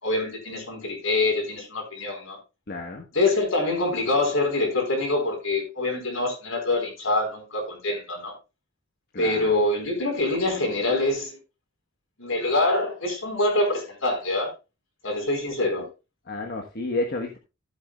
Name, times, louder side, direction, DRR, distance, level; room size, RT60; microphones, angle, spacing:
voice 1, 0.0-2.4 3.1-8.3 9.2-11.4 12.2-14.5 15.0-15.9, left 2 dB, 75° left, 4.5 m, -25 dB
voice 2, 2.7-3.0 9.1-9.5 16.3-17.4, left 2 dB, 50° left, 1.3 m, -30 dB
14.0 x 8.2 x 2.3 m
head